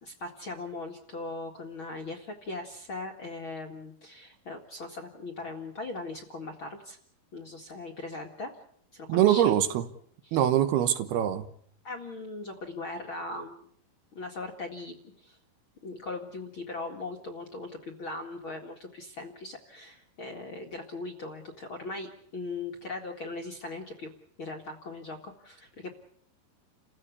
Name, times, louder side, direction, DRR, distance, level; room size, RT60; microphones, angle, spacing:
voice 1, 0.0-7.0 7.3-8.5 8.9-9.5 10.2-10.5 11.8-13.7 14.1-15.4 15.8-24.1 24.4-25.9, left 2 dB, 45° left, 1.9 m, -39 dB
voice 2, 9.1-9.8 10.3-11.5, right 11 dB, 75° right, 3.0 m, -23 dB
29.5 x 15.5 x 8.4 m
omnidirectional pair, 4.7 m